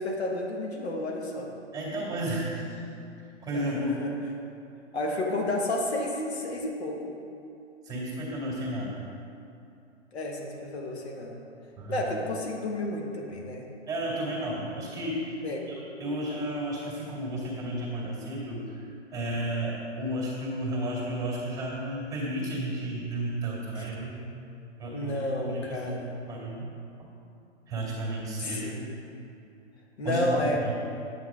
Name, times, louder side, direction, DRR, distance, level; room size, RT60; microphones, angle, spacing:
voice 1, 0.0-1.5 3.5-4.1 4.9-7.1 10.1-11.4 11.9-13.7 15.4-15.7 23.8-23.9 24.9-26.1 28.4-28.8 30.0-30.6, left 1 dB, 60° left, 0 dB, 1.4 m, -31 dB
voice 2, 1.7-2.8 3.4-4.0 7.8-9.0 11.8-12.0 13.9-15.4 15.7-18.8 19.1-24.4 24.8-25.9 26.3-26.7 27.7-28.7 30.0-30.7, right 1 dB, 10° right, -4 dB, 2.1 m, -32 dB
9.3 x 8.4 x 3.6 m, 2.7 s
hypercardioid pair, 130°, 36 cm